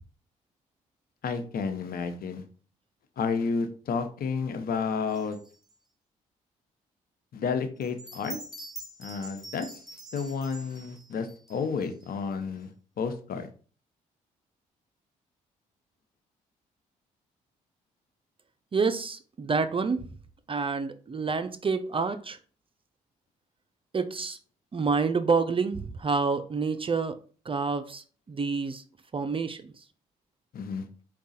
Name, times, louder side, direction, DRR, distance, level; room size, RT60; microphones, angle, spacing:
voice 1, 1.2-2.4 3.2-5.4 7.3-8.4 9.0-9.7 10.1-12.7 13.0-13.5 30.5-30.9, left 5 dB, 65° left, 0.8 m, -31 dB
sound 1, 5.1-5.7 7.8-12.3, right 2 dB, ahead, 2.3 m, -45 dB
voice 2, 18.7-20.0 20.5-22.4 23.9-24.4 24.7-27.2 27.5-28.8 29.1-29.6, right 4 dB, 35° right, 0.5 m, -28 dB
4.7 x 2.3 x 4.1 m
supercardioid pair, 55°, 17 cm